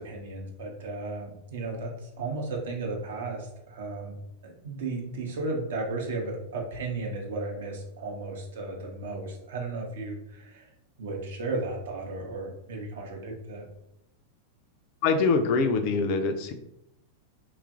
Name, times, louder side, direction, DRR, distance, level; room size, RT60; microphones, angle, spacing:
voice 1, 0.0-4.2 4.4-10.7 11.0-13.7, right 3 dB, 60° right, 1 dB, 0.6 m, -34 dB
voice 2, 15.0-16.5, left 4 dB, 45° left, 6 dB, 0.3 m, -24 dB
3.0 x 2.4 x 2.4 m, 0.81 s
figure-of-eight pair, 90°, 0 cm